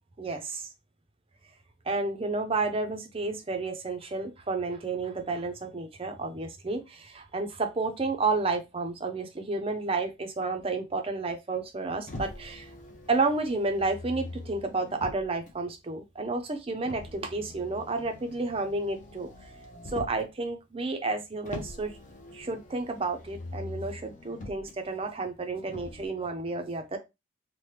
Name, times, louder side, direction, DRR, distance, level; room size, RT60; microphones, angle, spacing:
voice 1, 0.2-0.7 1.9-12.7 13.1-19.3 19.9-21.9 22.3-27.0, right 3 dB, 25° right, 6 dB, 0.5 m, -31 dB
Motor vehicle (road), 12.1-15.5 16.8-20.3 21.5-24.7 25.7-26.1, left 1 dB, 35° left, 0.7 m, -43 dB
3.2 x 2.1 x 3.0 m, 0.23 s
head